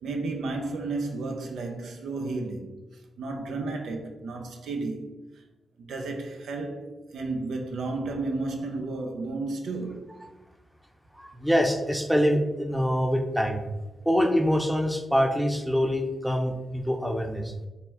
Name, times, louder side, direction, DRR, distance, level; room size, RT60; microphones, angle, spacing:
voice 1, 0.0-5.4 5.8-10.2, right 3 dB, 80° right, 0.4 m, -33 dB
voice 2, 11.1-13.6 14.1-17.5, equal, 5° right, 0.6 m, -25 dB
4.2 x 2.1 x 3.4 m
supercardioid pair, 40°, 0 cm